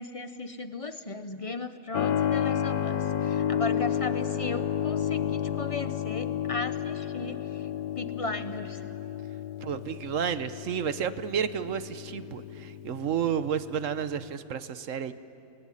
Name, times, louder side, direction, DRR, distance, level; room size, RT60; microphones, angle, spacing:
voice 1, 0.0-7.7 8.0-8.8, left 3 dB, 30° left, 10 dB, 0.6 m, -36 dB
Keyboard (musical), 1.9-14.3, left 9 dB, 70° left, 1.4 m, -32 dB
voice 2, 9.6-15.1, right 8 dB, 60° right, 12 dB, 1.2 m, -31 dB
28.0 x 19.5 x 9.8 m, 2.8 s
omnidirectional pair, 1.7 m